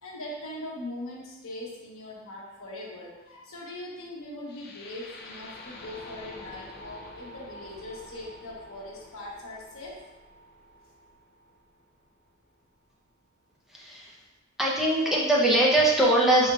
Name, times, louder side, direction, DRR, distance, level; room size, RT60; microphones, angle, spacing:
voice 1, 0.0-9.9, left 1 dB, 70° left, -3 dB, 1.1 m, -41 dB
sound 1, 4.5-12.5, left 1 dB, 50° left, 0.6 m, -47 dB
voice 2, 13.7-14.2 14.6-16.5, right 1 dB, ahead, -5 dB, 0.7 m, -22 dB
4.9 x 4.3 x 2.4 m, 1.0 s
head